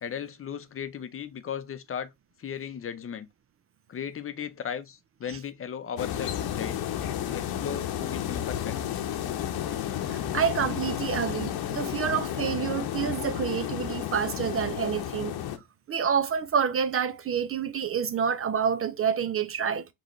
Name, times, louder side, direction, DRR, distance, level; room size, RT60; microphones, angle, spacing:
voice 1, 0.0-2.1 2.4-3.3 3.9-6.9 7.2-8.8, left 8 dB, 35° left, 0.6 m, -36 dB
sound 1, 6.0-15.6, left 10 dB, 70° left, 0.9 m, -32 dB
voice 2, 10.1-15.3 15.9-19.8, right 7 dB, 35° right, 0.5 m, -28 dB
5.1 x 3.1 x 3.1 m
supercardioid pair, 85°, 40 cm